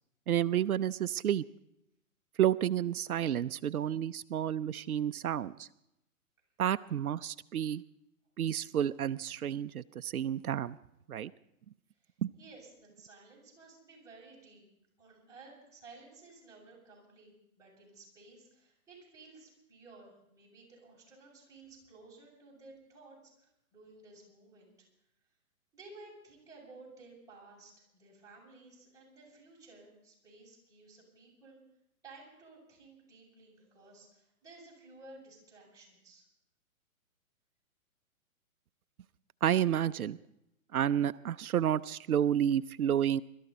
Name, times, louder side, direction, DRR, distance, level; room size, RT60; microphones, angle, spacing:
voice 1, 0.3-1.4 2.4-5.7 6.6-7.8 8.4-10.8 11.1-11.3 12.2-12.3 39.4-40.2 40.7-43.2, right 10 dB, 90° right, 15 dB, 0.6 m, -30 dB
voice 2, 12.0-14.6 15.0-24.7 25.7-31.6 32.0-36.2, right 3 dB, 10° right, -6 dB, 7.3 m, -55 dB
23.5 x 13.0 x 4.1 m, 0.81 s
hypercardioid pair, 130°, 43 cm